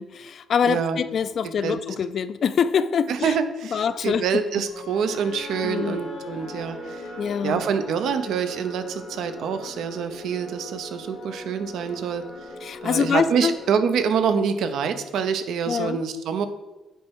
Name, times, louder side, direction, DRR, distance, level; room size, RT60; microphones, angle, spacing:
voice 1, 0.0-3.4 3.7-4.4 5.6-6.0 7.2-7.6 12.6-13.5 15.7-16.0, left 7 dB, 55° left, 14 dB, 0.3 m, -25 dB
voice 2, 0.7-1.0 1.4-1.8 3.1-7.1 7.4-12.2 12.8-16.5, right 6 dB, 75° right, 9 dB, 0.7 m, -26 dB
sound 1, 4.7-14.9, left 2 dB, 85° left, 1.5 m, -39 dB
8.9 x 3.2 x 4.8 m, 1.1 s
cardioid pair, 90°, 0 cm